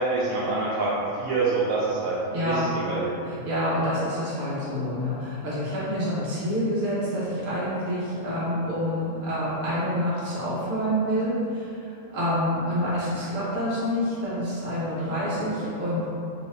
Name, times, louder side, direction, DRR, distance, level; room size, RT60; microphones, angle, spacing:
voice 1, 0.0-2.1 2.5-3.1, right 3 dB, 80° right, -8 dB, 1.0 m, -26 dB
voice 2, 2.3-2.7 3.2-16.1, equal, 45° right, -10 dB, 0.8 m, -27 dB
3.0 x 2.6 x 3.5 m, 2.6 s
omnidirectional pair, 1.4 m